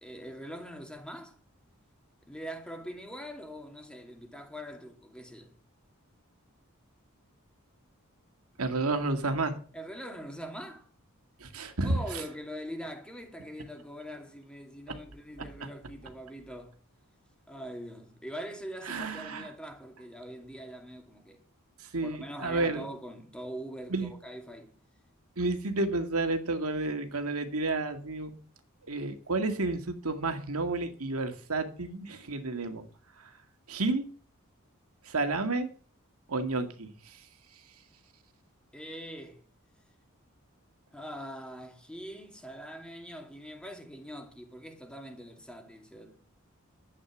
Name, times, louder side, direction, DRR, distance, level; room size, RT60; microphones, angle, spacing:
voice 1, 0.0-1.4 2.3-5.5 9.7-10.9 11.8-16.8 17.5-21.4 22.0-24.7 38.7-39.4 40.9-46.2, equal, 5° left, 2.4 m, -43 dB
voice 2, 8.6-9.6 11.4-12.2 15.6-15.7 18.9-19.5 21.8-22.8 23.9-24.1 25.4-28.4 28.8-32.8 33.2-33.3 33.7-34.1 35.0-35.7 36.3-37.2, right 2 dB, 90° right, 2.0 m, -31 dB
12.0 x 8.8 x 7.3 m
head